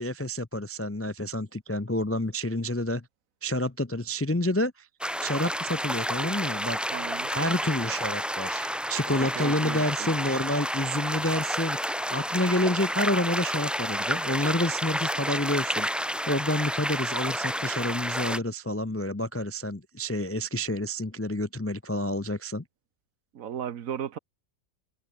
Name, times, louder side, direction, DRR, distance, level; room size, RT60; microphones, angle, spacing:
voice 1, 0.0-3.1 3.4-4.9 5.2-6.8 7.3-11.8 12.1-15.9 16.3-22.6, left 1 dB, 20° left, 0.4 m, -29 dB
sound 1, 5.0-18.4, equal, ahead, 2.2 m, -30 dB
voice 2, 6.9-7.3 9.4-10.1 23.3-24.2, right 9 dB, 70° right, 1.3 m, -35 dB
omnidirectional pair, 1.5 m